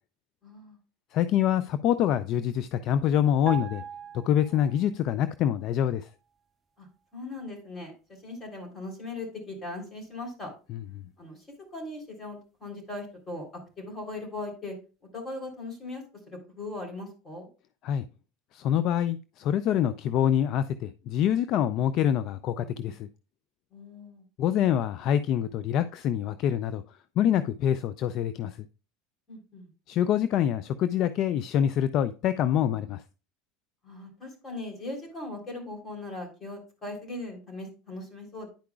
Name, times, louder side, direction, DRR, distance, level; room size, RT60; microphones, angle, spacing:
voice 1, 0.4-0.8 6.8-6.9 7.1-10.5 11.2-11.5 11.7-13.4 13.8-14.8 15.1-17.5 23.7-24.2 29.3-29.7 33.8-38.5, left 2 dB, 30° left, 3.5 m, -39 dB
voice 2, 1.1-3.8 4.1-6.1 10.7-10.8 17.8-18.1 18.5-23.1 24.4-26.8 27.2-28.7 29.9-33.0, left 10 dB, 55° left, 0.4 m, -25 dB
sound 1, 3.5-5.1 5.4-5.6, right 5 dB, 25° right, 0.7 m, -39 dB
10.5 x 4.7 x 2.3 m
hypercardioid pair, 95°, 0 cm